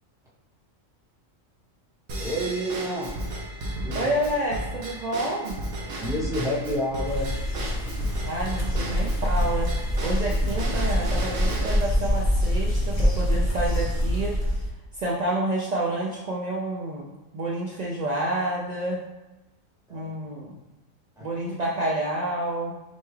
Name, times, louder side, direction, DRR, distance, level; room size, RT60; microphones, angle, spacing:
Drum kit / Drum / Bell, 2.1-11.8, right 1 dB, 85° right, 1.3 m, -34 dB
voice 1, 2.2-3.2 3.8-4.1 6.0-7.4 19.9-20.1 21.2-21.3, equal, 5° right, -7 dB, 0.9 m, -29 dB
voice 2, 3.9-5.6 8.3-9.7 10.0-14.3 14.9-17.1 17.3-19.0 19.9-20.6 21.2-22.8, right 1 dB, 65° right, -4 dB, 0.4 m, -29 dB
sound 1, 7.1-14.7, equal, 30° left, 1.0 m, -25 dB
6.6 x 2.3 x 3.2 m, 1.0 s
omnidirectional pair, 1.4 m